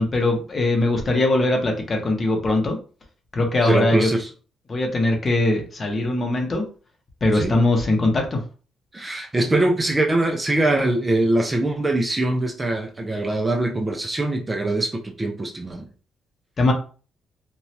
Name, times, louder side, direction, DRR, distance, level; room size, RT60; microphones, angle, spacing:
voice 1, 0.0-2.8 3.3-4.1 4.7-6.6 7.2-8.4 16.6-16.7, left 2 dB, 30° left, 3 dB, 0.7 m, -21 dB
voice 2, 3.6-4.3 7.3-7.6 8.9-15.9, right 2 dB, 20° right, 2 dB, 0.4 m, -22 dB
2.7 x 2.3 x 3.1 m, 0.37 s
cardioid pair, 125°, 0 cm